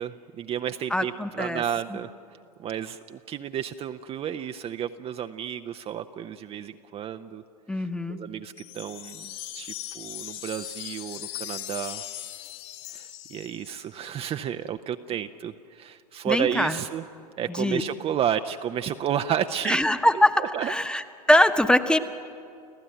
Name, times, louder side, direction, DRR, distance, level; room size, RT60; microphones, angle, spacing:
voice 1, 0.0-2.1 2.6-7.4 7.7-12.0 12.9-17.0 17.4-19.8 20.1-20.7, right 9 dB, 30° right, 8 dB, 0.7 m, -32 dB
voice 2, 0.9-1.6 7.7-8.2 16.2-16.8 17.5-17.8 19.6-21.0 21.3-22.0, left 1 dB, 5° left, 10 dB, 1.1 m, -22 dB
sound 1, 8.6-13.9, left 13 dB, 50° left, 2.4 m, -39 dB
30.0 x 15.5 x 9.1 m, 2.5 s
hypercardioid pair, 90°, 20 cm